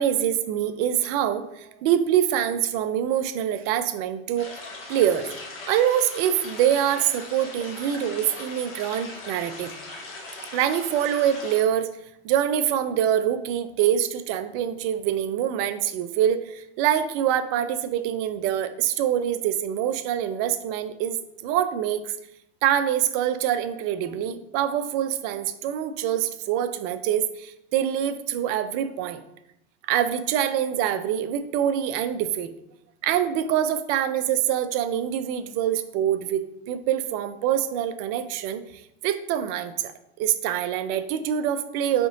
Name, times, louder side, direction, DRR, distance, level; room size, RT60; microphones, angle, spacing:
voice 1, 0.0-4.5 4.9-5.3 5.6-9.7 10.5-11.9 12.2-22.2 22.6-29.2 29.9-32.5 33.0-38.6 39.0-39.9 40.2-42.1, right 10 dB, 50° right, 11 dB, 0.5 m, -25 dB
sound 1, 4.4-11.6, left 3 dB, 35° left, 1.3 m, -40 dB
3.6 x 3.5 x 3.9 m, 0.80 s
hypercardioid pair, 105°, 34 cm